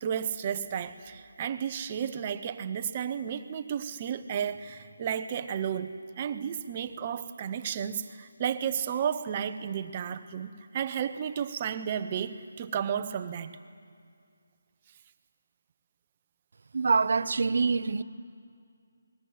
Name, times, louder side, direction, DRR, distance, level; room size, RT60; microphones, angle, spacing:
voice 1, 0.0-13.6, right 8 dB, 25° right, 1.0 m, -33 dB
voice 2, 16.7-18.0, right 4 dB, 55° right, 0.9 m, -25 dB
28.5 x 20.5 x 9.5 m
hypercardioid pair, 170°, 0 cm